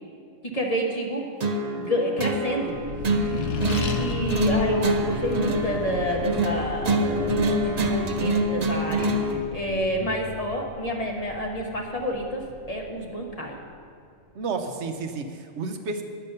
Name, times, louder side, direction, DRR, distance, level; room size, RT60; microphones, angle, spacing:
voice 1, 0.5-1.2 1.8-2.8 3.6-12.4 12.7-13.6, equal, 30° left, 0 dB, 1.2 m, -29 dB
sound 1, 1.4-9.4, right 1 dB, 40° right, 0.6 m, -26 dB
Accelerating revving vroom, 2.7-13.6, left 3 dB, 55° left, 0.8 m, -34 dB
voice 2, 14.3-16.0, right 4 dB, 65° right, 6 dB, 1.0 m, -31 dB
9.7 x 6.9 x 6.7 m, 2.3 s
omnidirectional pair, 1.3 m